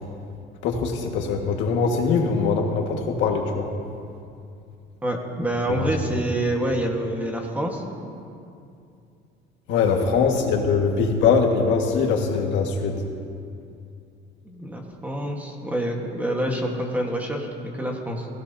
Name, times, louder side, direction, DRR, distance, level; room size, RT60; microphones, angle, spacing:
voice 1, 0.6-3.6 9.7-12.9, left 5 dB, 80° left, 2 dB, 1.8 m, -22 dB
voice 2, 5.0-7.8 10.0-10.3 14.4-18.3, right 1 dB, 10° right, 0 dB, 1.5 m, -27 dB
20.0 x 16.0 x 2.8 m, 2.5 s
cardioid pair, 160°, 19 cm